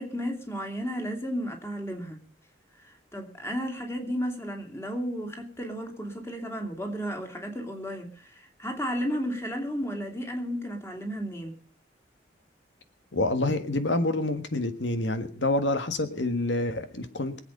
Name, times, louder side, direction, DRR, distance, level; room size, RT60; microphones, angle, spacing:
voice 1, 0.0-2.2 2.8-11.6, equal, 15° left, 2.9 m, -33 dB
voice 2, 13.1-17.4, left 2 dB, 85° left, 1.6 m, -27 dB
24.0 x 8.1 x 5.4 m
head